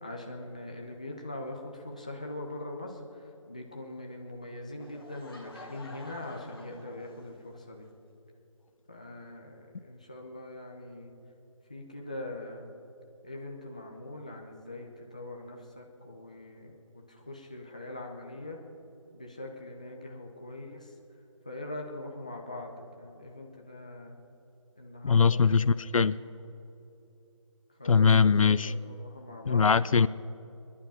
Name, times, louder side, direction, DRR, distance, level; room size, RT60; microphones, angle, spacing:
voice 1, 0.0-7.9 8.9-11.1 11.7-12.7 13.2-18.6 19.1-20.9 21.4-24.2 24.8-25.9 26.1-26.5 27.8-29.7, left 1 dB, 15° left, 1 dB, 0.6 m, -42 dB
Laughter / Crowd, 4.8-7.6, left 2 dB, 45° left, 1.7 m, -49 dB
voice 2, 25.0-26.2 27.9-28.7 29.5-30.1, left 5 dB, 85° left, 18 dB, 0.5 m, -22 dB
24.0 x 10.5 x 5.6 m, 2.9 s
figure-of-eight pair, 180°, 17 cm